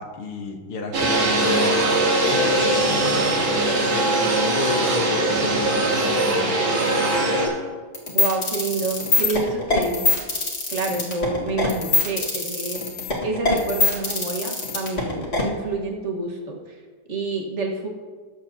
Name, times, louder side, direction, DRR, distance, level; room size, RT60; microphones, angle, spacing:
voice 1, 0.0-1.8 2.3-6.6, left 3 dB, 85° left, 3 dB, 2.1 m, -31 dB
sound 1, 0.9-7.5, right 1 dB, 65° right, 2.8 m, -21 dB
sound 2, 1.0-7.5, right 3 dB, 85° right, 3.0 m, -34 dB
sound 3, 7.9-15.4, left 3 dB, 30° left, 1.9 m, -22 dB
voice 2, 8.1-10.2 10.7-16.6 17.1-17.9, right 3 dB, 35° right, 0 dB, 1.7 m, -28 dB
20.0 x 7.8 x 2.8 m, 1.5 s
omnidirectional pair, 2.3 m